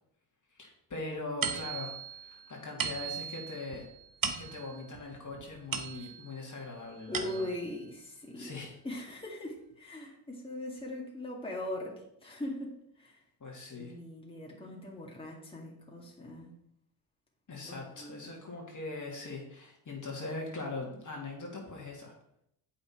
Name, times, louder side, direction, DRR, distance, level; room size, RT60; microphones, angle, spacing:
voice 1, 0.6-3.9 4.4-7.5 8.4-8.8 13.4-13.9 17.5-22.1, left 2 dB, 40° left, -1 dB, 2.3 m, -41 dB
sound 1, 1.4-6.4 6.8-7.7, right 7 dB, 45° right, 1.1 m, -38 dB
voice 2, 7.1-8.6 8.8-13.2 13.8-16.5 17.6-18.3, left 1 dB, 10° left, -3 dB, 2.2 m, -41 dB
7.6 x 5.8 x 4.5 m, 0.76 s
cardioid pair, 75°, 49 cm